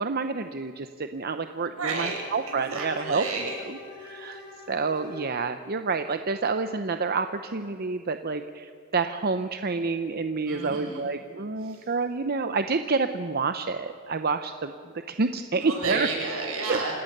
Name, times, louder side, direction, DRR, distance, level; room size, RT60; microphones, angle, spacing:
voice 1, 0.0-3.3 3.7-4.4 4.7-14.7 15.1-16.1 16.7-16.8, right 4 dB, 45° right, 9 dB, 0.7 m, -28 dB
voice 2, 1.8-2.2 2.5-3.6 10.5-11.1 11.6-11.8 15.6-16.9, right 3 dB, 75° right, 0 dB, 6.2 m, -31 dB
Bowed string instrument, 2.0-5.4, left 2 dB, 25° left, 6.6 m, -44 dB
29.0 x 17.5 x 6.7 m, 2.2 s
head